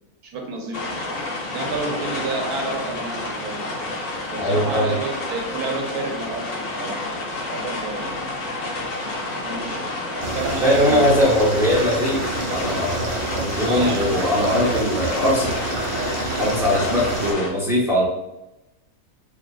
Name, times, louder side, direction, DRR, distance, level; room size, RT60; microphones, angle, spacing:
voice 1, 0.2-0.8 1.5-3.6 4.3-7.0 7.5-8.0 9.4-9.8 10.1-11.2 13.7-14.2 16.3-16.5, right 3 dB, 85° right, 1 dB, 1.3 m, -30 dB
sound 1, 0.7-17.5, left 2 dB, 85° left, 1.5 m, -29 dB
voice 2, 4.4-4.9 10.6-12.2 12.5-15.5 16.4-18.0, left 1 dB, 5° right, -6 dB, 0.4 m, -20 dB
sound 2, 10.2-17.3, right 3 dB, 65° right, 0.5 m, -28 dB
4.7 x 2.2 x 2.3 m, 0.92 s
omnidirectional pair, 1.6 m